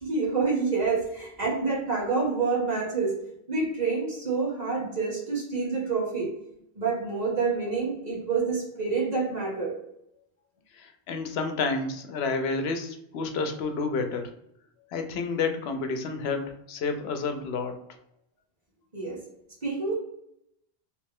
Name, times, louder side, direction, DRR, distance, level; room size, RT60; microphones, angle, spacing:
voice 1, 0.0-3.2 3.5-6.3 6.7-9.7 18.9-19.2 19.6-19.9, right 4 dB, 45° right, -4 dB, 1.4 m, -27 dB
voice 2, 10.8-14.3 14.9-17.7, left 4 dB, 80° left, 6 dB, 0.8 m, -30 dB
3.1 x 3.0 x 3.5 m, 0.78 s
omnidirectional pair, 1.0 m